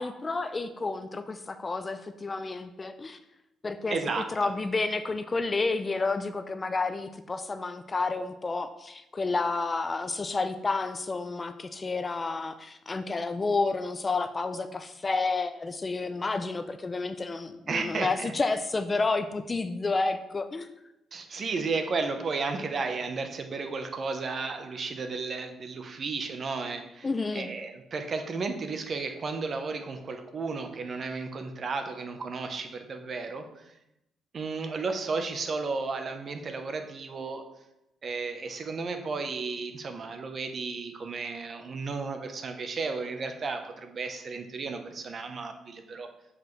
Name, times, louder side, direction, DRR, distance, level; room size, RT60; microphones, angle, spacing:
voice 1, 0.0-3.2 3.6-20.7 27.0-27.5, left 3 dB, 30° left, 10 dB, 0.4 m, -30 dB
voice 2, 3.9-4.5 17.7-18.3 21.1-33.7 34.3-37.5 38.0-46.1, right 4 dB, 45° right, 6 dB, 0.8 m, -33 dB
7.7 x 4.8 x 3.2 m, 0.88 s
cardioid pair, 90°, 0 cm